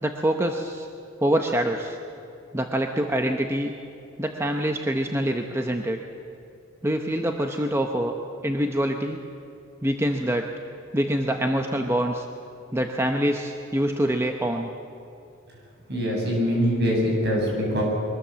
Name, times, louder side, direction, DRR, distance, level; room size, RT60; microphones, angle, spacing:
voice 1, 0.0-0.9 1.2-2.0 2.5-3.7 4.2-6.0 6.8-8.2 8.4-9.2 9.8-10.5 10.9-12.2 12.7-14.7, right 1 dB, 15° right, 3 dB, 0.9 m, -25 dB
voice 2, 15.9-17.8, equal, 55° right, -1 dB, 7.4 m, -23 dB
23.0 x 20.0 x 7.6 m, 2.7 s
head